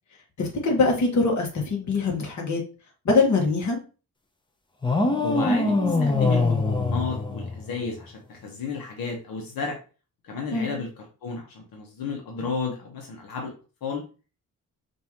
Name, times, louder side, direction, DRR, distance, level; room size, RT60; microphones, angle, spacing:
voice 1, 0.4-2.6 3.0-3.8 10.5-10.8, left 3 dB, 55° left, 0 dB, 1.5 m, -23 dB
sound 1, 4.8-8.0, left 3 dB, 15° left, 0.6 m, -23 dB
voice 2, 5.2-9.8 10.2-10.9 11.2-13.5 13.8-14.0, left 4 dB, 85° left, 0 dB, 1.1 m, -32 dB
5.3 x 2.7 x 2.9 m, 0.35 s
wide cardioid pair, 125°, 34 cm